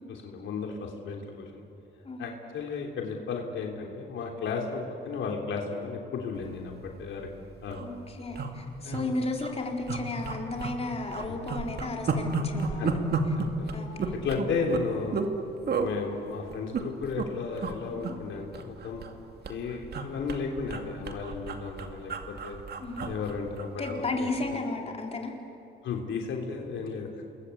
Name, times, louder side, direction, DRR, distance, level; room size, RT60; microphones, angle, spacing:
voice 1, 0.1-1.6 2.2-6.7 7.0-7.3 7.6-7.9 8.8-9.1 12.8-13.0 13.3-13.8 14.2-15.3 15.8-19.0 19.5-22.6 23.0-24.6 25.8-27.2, left 5 dB, 75° left, 1 dB, 3.3 m, -34 dB
sound 1, 6.9-7.1 7.3-7.4 7.6-7.9 8.3-9.0 9.4-9.5 9.9-10.8 11.1-15.3 15.7-15.9 16.5-17.3 17.6-17.8 18.0-19.2 19.4-24.0 24.3-24.5, right 4 dB, 55° right, 2.5 m, -32 dB
voice 2, 7.8-12.9 13.7-14.1 17.9-18.1 22.8-23.1 23.8-25.3, left 2 dB, 30° left, 1 dB, 4.0 m, -34 dB
28.0 x 22.0 x 8.4 m, 2.9 s
cardioid pair, 90°, 20 cm